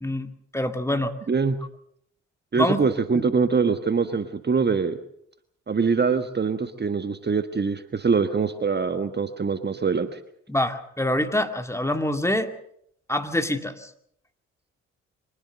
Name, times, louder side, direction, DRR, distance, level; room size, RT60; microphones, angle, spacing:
voice 1, 0.0-1.1 2.6-2.8 3.1-3.2 10.5-12.5 13.1-13.9, left 1 dB, 10° left, 6 dB, 2.4 m, -25 dB
voice 2, 2.5-5.0 5.7-10.2, right 5 dB, 30° right, 10 dB, 1.4 m, -23 dB
24.5 x 19.0 x 6.7 m, 0.70 s
figure-of-eight pair, 45°, 36 cm